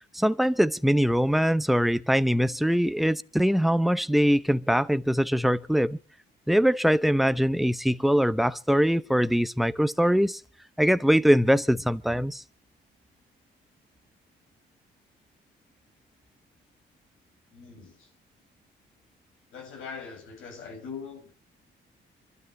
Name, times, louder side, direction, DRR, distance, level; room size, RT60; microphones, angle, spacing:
voice 1, 0.1-6.0 6.5-10.4 10.8-12.4, equal, ahead, 0.7 m, -22 dB
voice 2, 17.5-18.1 19.5-21.3, left 6 dB, 85° left, 6.8 m, -41 dB
26.0 x 12.5 x 3.2 m
cardioid pair, 90°, 20 cm